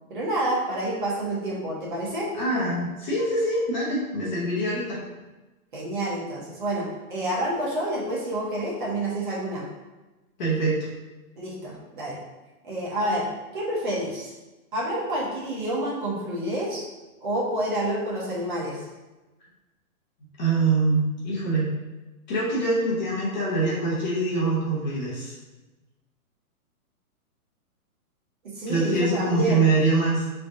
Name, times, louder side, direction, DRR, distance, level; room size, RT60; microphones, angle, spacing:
voice 1, 0.1-2.3 5.7-9.6 11.4-12.2 12.6-13.3 13.5-14.3 14.7-16.8 17.2-18.8 28.5-29.7, right 1 dB, 35° right, -5 dB, 0.9 m, -28 dB
voice 2, 2.4-5.0 10.4-10.9 20.4-21.7 22.3-25.3 28.7-30.3, right 2 dB, 30° left, -5 dB, 0.9 m, -24 dB
4.8 x 3.3 x 2.7 m, 1.1 s
hypercardioid pair, 170°, 45 cm